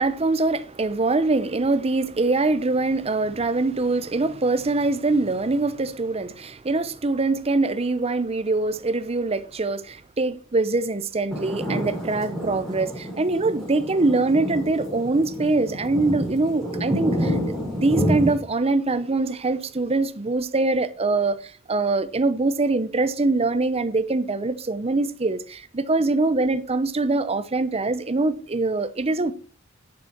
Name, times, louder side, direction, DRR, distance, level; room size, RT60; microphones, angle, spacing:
voice 1, 0.0-29.3, right 3 dB, 30° right, 0.7 m, -23 dB
sound 1, 11.3-18.4, equal, ahead, 4.8 m, -28 dB
10.5 x 8.0 x 4.5 m
head